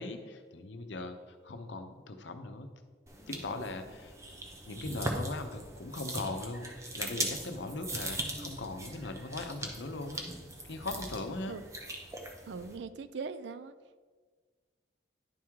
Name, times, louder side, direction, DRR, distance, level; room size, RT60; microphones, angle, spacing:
voice 1, 0.0-2.7 3.3-4.1 4.7-10.2 10.6-11.6, left 2 dB, 85° left, 7 dB, 0.7 m, -39 dB
sound 1, 3.1-12.8, right 1 dB, 15° right, 0.7 m, -40 dB
voice 2, 12.5-13.7, right 4 dB, 75° right, 13 dB, 0.4 m, -40 dB
10.5 x 3.6 x 4.6 m, 1.5 s
head